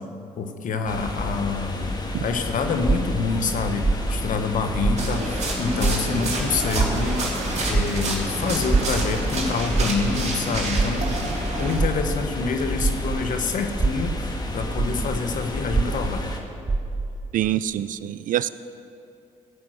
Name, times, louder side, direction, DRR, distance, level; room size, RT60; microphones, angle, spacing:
voice 1, 0.4-1.9 2.2-7.4 7.7-11.3 11.6-16.2, left 5 dB, 65° left, 7 dB, 1.2 m, -27 dB
sound 1, 0.9-16.4, left 1 dB, 30° left, 1.6 m, -31 dB
sound 2, 2.8-5.5 5.8-13.3 13.7-17.2, right 3 dB, 25° right, 0.9 m, -26 dB
sound 3, 5.0-11.8, right 2 dB, 50° right, 3.4 m, -29 dB
voice 2, 17.3-18.5, right 12 dB, 65° right, 16 dB, 0.4 m, -25 dB
14.5 x 6.1 x 7.8 m, 2.6 s
supercardioid pair, 60°, 15 cm